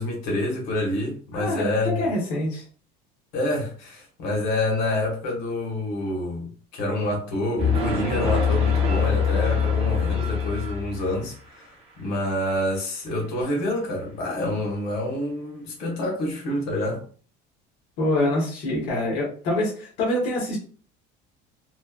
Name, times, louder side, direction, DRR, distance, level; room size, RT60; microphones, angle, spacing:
voice 1, 0.0-2.1 3.3-11.7 12.0-17.0, left 1 dB, 90° left, -2 dB, 1.2 m, -27 dB
voice 2, 1.3-2.6 18.0-20.6, left 1 dB, 65° left, -3 dB, 1.1 m, -25 dB
sound 1, 7.6-11.4, left 5 dB, 30° right, 0.6 m, -23 dB
3.0 x 2.2 x 2.3 m, 0.42 s
cardioid pair, 160°, 20 cm